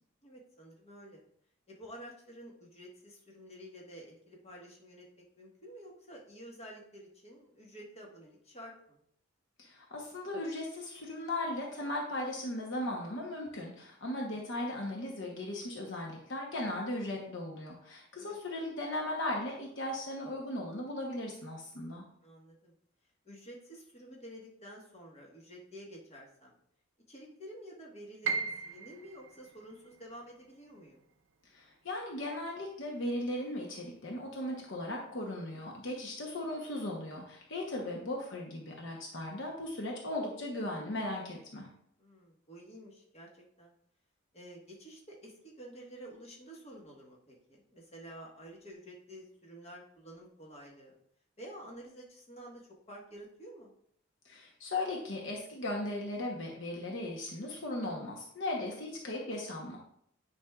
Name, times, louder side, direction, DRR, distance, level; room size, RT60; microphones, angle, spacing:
voice 1, 0.2-1.2 1.7-9.0 14.3-14.4 18.1-18.4 22.2-22.7 23.2-26.5 27.1-31.0 42.0-43.7 44.3-51.0 51.4-53.7, equal, 30° left, -2 dB, 1.4 m, -50 dB
voice 2, 9.6-22.0 31.5-41.7 54.2-59.8, left 1 dB, 60° left, -1 dB, 1.0 m, -37 dB
Piano, 28.2-34.2 34.5-35.7 36.1-36.2 36.9-37.2, right 5 dB, 70° right, 0.6 m, -41 dB
9.5 x 5.2 x 2.4 m, 0.67 s
head